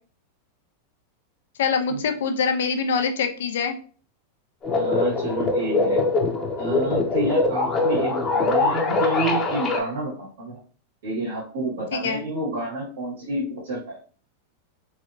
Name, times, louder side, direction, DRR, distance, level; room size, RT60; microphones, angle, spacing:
voice 1, 1.6-3.7 11.9-12.2, left 5 dB, 75° left, 6 dB, 0.4 m, -24 dB
sound 1, 4.6-9.8, left 3 dB, 25° left, 0.7 m, -22 dB
voice 2, 4.7-6.0 6.6-10.6 11.0-14.0, right 2 dB, 80° right, -5 dB, 1.7 m, -29 dB
3.1 x 2.8 x 2.5 m, 0.40 s
hypercardioid pair, 110°, 0 cm